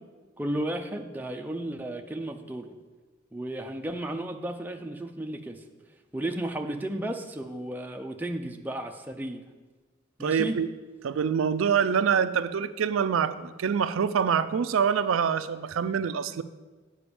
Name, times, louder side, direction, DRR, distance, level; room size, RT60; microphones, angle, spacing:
voice 1, 0.4-2.7 3.3-5.6 6.1-9.4 10.2-10.6, right 1 dB, 10° right, 3 dB, 0.5 m, -33 dB
voice 2, 10.2-10.7 11.0-16.4, right 7 dB, 85° right, 12 dB, 0.4 m, -25 dB
8.7 x 5.0 x 6.9 m, 1.3 s
head